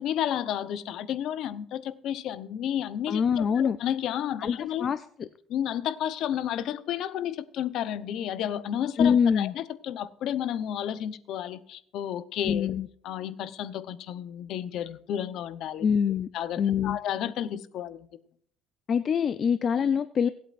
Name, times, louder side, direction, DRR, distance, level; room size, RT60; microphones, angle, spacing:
voice 1, 0.0-4.9 5.5-12.7 13.0-15.9 16.3-18.1, left 10 dB, 65° left, 14 dB, 0.8 m, -32 dB
voice 2, 3.1-3.8 4.4-5.3 9.0-9.5 12.5-12.9 15.8-16.3 16.6-17.0 18.9-20.3, left 7 dB, 35° left, 13 dB, 0.4 m, -25 dB
24.5 x 8.6 x 2.5 m, 0.63 s
cardioid pair, 165°, 0 cm